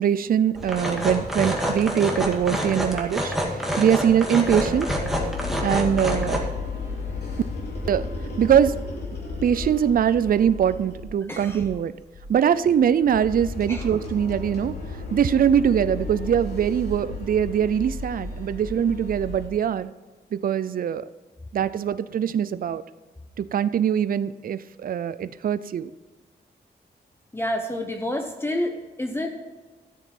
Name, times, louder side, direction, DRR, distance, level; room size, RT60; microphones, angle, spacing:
voice 1, 0.0-3.3 3.8-4.9 5.6-6.5 7.9-8.1 8.4-8.8 9.4-11.9 12.3-14.8 15.1-19.9 20.3-21.0 21.5-22.8 23.4-25.9, right 9 dB, 55° right, 15 dB, 0.4 m, -22 dB
sound 1, 0.6-6.4, equal, ahead, 2.0 m, -27 dB
sound 2, 4.4-11.2 11.5-11.8 12.1-12.3 12.7-19.5, left 3 dB, 65° left, 3.2 m, -33 dB
voice 2, 11.3-11.6 13.7-13.8 27.3-29.3, left 1 dB, 15° left, 4 dB, 0.9 m, -28 dB
13.0 x 7.3 x 5.9 m, 1.3 s
wide cardioid pair, 120°, 18 cm